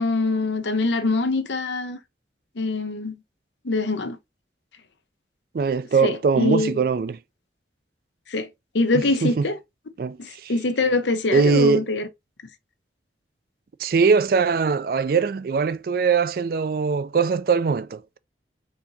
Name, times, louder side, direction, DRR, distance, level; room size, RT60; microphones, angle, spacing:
voice 1, 0.0-2.0 2.6-3.2 3.6-4.2 6.0-6.7 8.3-8.5 8.7-9.6 10.2-12.1, left 3 dB, 80° left, 0.7 m, -24 dB
voice 2, 5.5-7.2 9.2-9.5 10.0-10.5 11.3-11.9 13.8-18.2, right 5 dB, 50° right, 0.3 m, -21 dB
4.3 x 2.8 x 3.9 m
head